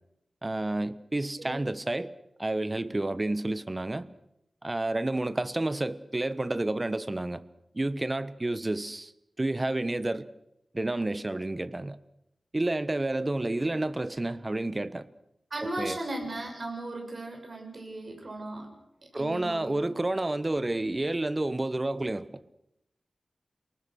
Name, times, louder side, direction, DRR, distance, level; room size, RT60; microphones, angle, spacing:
voice 1, 0.4-2.1 2.4-4.1 4.6-7.4 7.7-9.1 9.4-10.3 10.7-12.0 12.5-15.1 15.6-16.0 19.1-22.4, right 2 dB, 25° right, 1.2 m, -30 dB
voice 2, 15.5-18.7 19.1-20.0, right 2 dB, 50° right, 7.1 m, -37 dB
29.0 x 19.5 x 6.4 m
wide cardioid pair, 85°, 0 cm